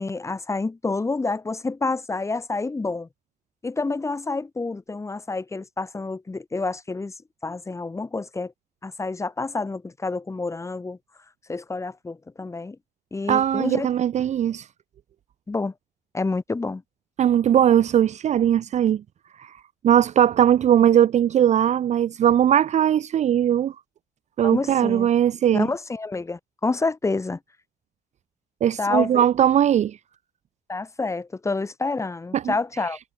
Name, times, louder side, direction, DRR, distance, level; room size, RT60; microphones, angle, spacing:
voice 1, 0.0-3.1 3.6-7.1 7.4-8.5 8.8-11.0 11.5-12.8 13.1-13.9 15.5-15.7 16.1-16.8 24.4-25.1 25.5-27.4 28.8-29.3 30.7-33.0, left 3 dB, 15° left, 1.9 m, -28 dB
voice 2, 13.3-14.7 17.2-19.0 19.4-19.5 19.8-23.8 24.4-25.7 28.6-30.0 32.3-32.5, right 10 dB, 45° right, 0.5 m, -19 dB
cardioid pair, 110°, 17 cm